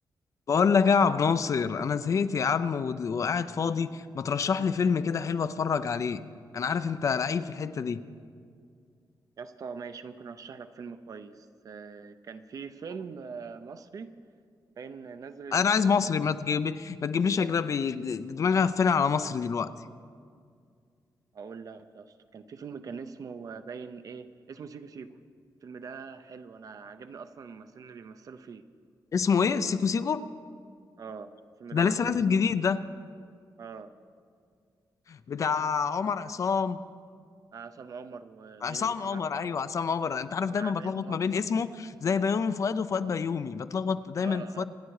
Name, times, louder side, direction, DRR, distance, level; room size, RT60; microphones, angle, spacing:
voice 1, 0.5-6.2 6.5-8.0 15.5-19.7 29.1-30.2 31.7-32.8 35.1-36.8 38.6-44.6, left 6 dB, 45° left, 12 dB, 0.5 m, -27 dB
voice 2, 9.4-14.2 14.8-16.3 21.3-25.2 25.6-28.7 31.0-31.3 31.6-32.4 33.6-33.9 37.5-39.2 40.4-41.5 44.2-44.6, right 5 dB, 50° right, 11 dB, 0.7 m, -43 dB
26.5 x 10.5 x 4.8 m, 2.2 s
wide cardioid pair, 180°, 8 cm